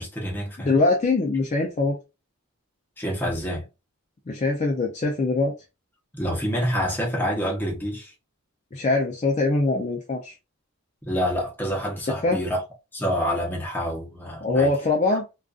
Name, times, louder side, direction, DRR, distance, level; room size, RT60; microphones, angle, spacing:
voice 1, 0.0-0.8 3.0-3.6 6.1-8.1 11.0-12.6 12.9-14.7, equal, 10° left, 0.8 m, -27 dB
voice 2, 0.6-2.0 4.3-5.5 8.7-10.3 12.2-12.4 14.4-15.2, left 3 dB, 30° left, 0.4 m, -22 dB
2.4 x 2.3 x 2.3 m
head